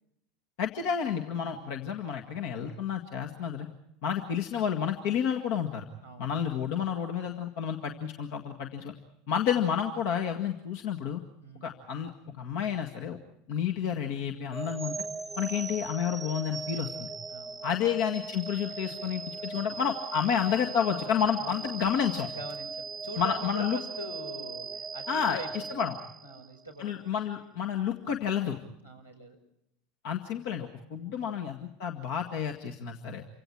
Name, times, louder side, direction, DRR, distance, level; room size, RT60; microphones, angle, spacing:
voice 1, 0.6-3.7 4.0-5.9 6.2-8.9 9.3-11.2 11.6-13.2 13.5-15.0 15.4-17.1 17.6-22.3 23.2-23.8 25.1-26.0 26.8-28.6 30.0-33.2, left 8 dB, 55° left, 3 dB, 1.9 m, -30 dB
voice 2, 1.4-1.8 6.0-6.3 11.4-11.8 17.3-17.9 19.3-19.7 21.4-21.7 22.3-25.8 26.2-27.0 28.8-29.4 31.0-31.4, right 1 dB, 90° left, 2 dB, 5.2 m, -44 dB
sound 1, 14.5-26.6, right 4 dB, 15° right, 1.0 m, -39 dB
29.0 x 25.5 x 4.7 m, 0.80 s
figure-of-eight pair, 75°, 0 cm